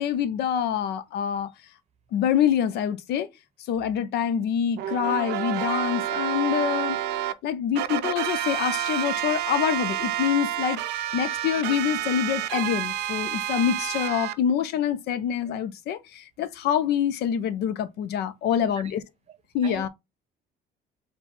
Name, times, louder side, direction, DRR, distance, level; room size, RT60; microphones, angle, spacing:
voice 1, 0.0-1.5 2.1-3.3 3.7-7.0 7.4-19.0 19.5-19.9, left 9 dB, 75° left, 0.6 m, -26 dB
sound 1, 4.8-7.3 7.8-14.3, right 12 dB, 80° right, 0.5 m, -29 dB
voice 2, 18.5-18.9 19.3-19.4 19.6-19.9, right 7 dB, 40° right, 0.7 m, -41 dB
4.4 x 2.3 x 4.0 m
cardioid pair, 110°, 17 cm